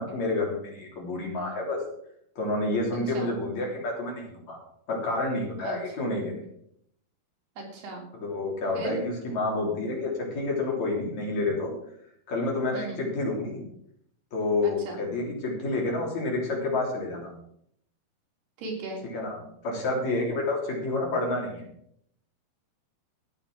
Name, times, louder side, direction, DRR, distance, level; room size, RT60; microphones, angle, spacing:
voice 1, 0.0-1.8 2.4-4.6 4.9-6.3 8.1-11.7 12.3-13.6 14.3-17.3 19.1-19.4 19.6-21.6, left 2 dB, 45° left, -1 dB, 4.4 m, -29 dB
voice 2, 2.9-3.3 5.6-5.8 7.6-8.0 8.8-9.0 12.7-13.0 14.6-15.0 18.6-19.0, right 3 dB, 85° right, 0 dB, 5.3 m, -36 dB
13.5 x 8.8 x 6.1 m, 0.71 s
omnidirectional pair, 4.5 m